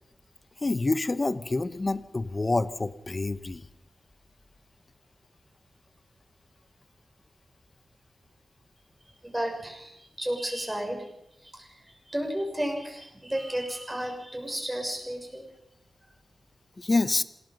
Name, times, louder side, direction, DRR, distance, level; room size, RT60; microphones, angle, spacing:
voice 1, 0.6-3.6 16.8-17.2, left 2 dB, 30° left, 13 dB, 1.0 m, -27 dB
voice 2, 9.2-11.1 11.4-15.5, right 1 dB, 10° right, 1 dB, 6.8 m, -33 dB
27.0 x 20.5 x 5.5 m, 0.81 s
wide cardioid pair, 135°, 0 cm